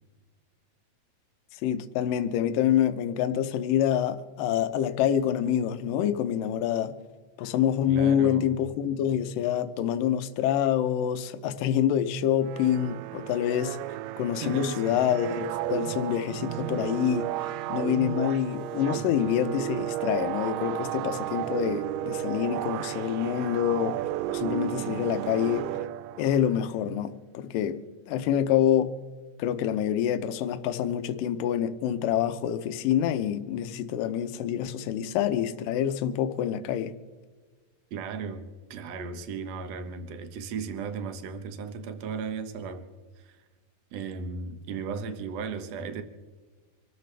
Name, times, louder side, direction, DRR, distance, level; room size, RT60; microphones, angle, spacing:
voice 1, 1.6-7.0 7.4-13.8 14.2-24.0 24.3-25.7 26.2-27.8 28.1-28.9 29.4-36.9, left 10 dB, 75° left, 2.2 m, -26 dB
voice 2, 7.9-8.6 14.4-15.1 37.9-42.8 43.2-43.4 43.9-46.0, right 5 dB, 65° right, 1.7 m, -36 dB
sound 1, 12.4-26.5, right 14 dB, 85° right, 2.5 m, -33 dB
26.0 x 13.5 x 3.3 m
omnidirectional pair, 4.4 m